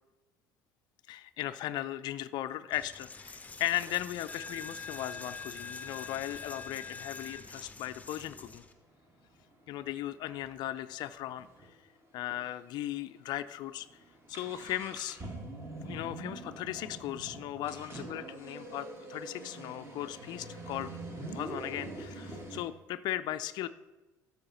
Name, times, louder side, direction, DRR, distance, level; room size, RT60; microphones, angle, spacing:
voice 1, 1.1-8.6 9.7-11.8 12.1-13.9 14.3-15.2 15.8-20.9 21.3-23.7, left 13 dB, 45° left, 12 dB, 0.4 m, -37 dB
Coin (dropping), 2.7-8.7, left 4 dB, 15° left, 0.7 m, -44 dB
sound 1, 3.3-3.4 3.8-6.5 7.1-7.2 7.5-7.7 8.1-11.7 12.0-12.1 12.3-12.4 13.0-13.2 13.5-22.6, right 2 dB, 25° right, 1.7 m, -45 dB
12.5 x 4.8 x 4.1 m, 1.1 s
figure-of-eight pair, 55°, 10 cm